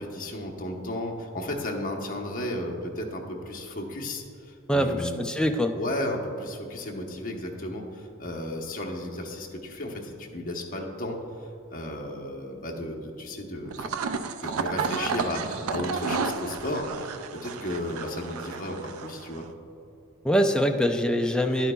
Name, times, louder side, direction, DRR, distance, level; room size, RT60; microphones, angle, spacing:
voice 1, 0.0-5.2 5.7-11.2 11.7-13.9 14.4-17.1 17.4-19.5, left 1 dB, 40° left, 1 dB, 1.0 m, -34 dB
voice 2, 4.7-5.7 20.2-21.7, equal, 5° left, 4 dB, 0.4 m, -24 dB
sound 1, 13.7-19.5, right 5 dB, 85° right, 0.4 m, -32 dB
11.0 x 9.2 x 2.3 m, 2.8 s
head